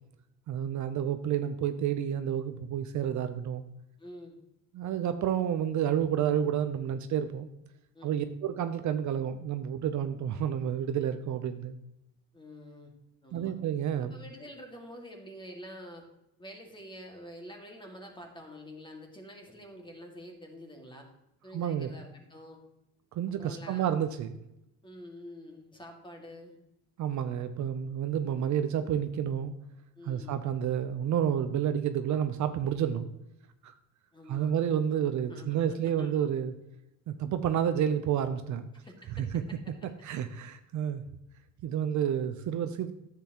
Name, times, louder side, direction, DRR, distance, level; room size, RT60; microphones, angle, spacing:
voice 1, 0.5-3.6 4.7-7.5 8.0-11.8 13.3-14.1 21.5-21.9 23.1-24.4 27.0-29.5 30.1-33.1 33.6-33.7 34.3-36.5 37.1-38.7 39.2-39.3 40.0-41.0 41.6-42.9, right 9 dB, 50° right, 9 dB, 0.6 m, -30 dB
voice 2, 4.0-4.4 7.9-8.3 12.3-12.9 13.2-13.5 14.0-16.1 16.4-21.1 21.4-22.6 23.3-23.9 24.8-26.6 30.0-30.4 34.1-34.5 35.2-36.3 37.6-37.8 38.7-39.6, equal, 15° left, 2 dB, 2.0 m, -47 dB
10.5 x 7.7 x 3.0 m, 0.87 s
cardioid pair, 110°, 36 cm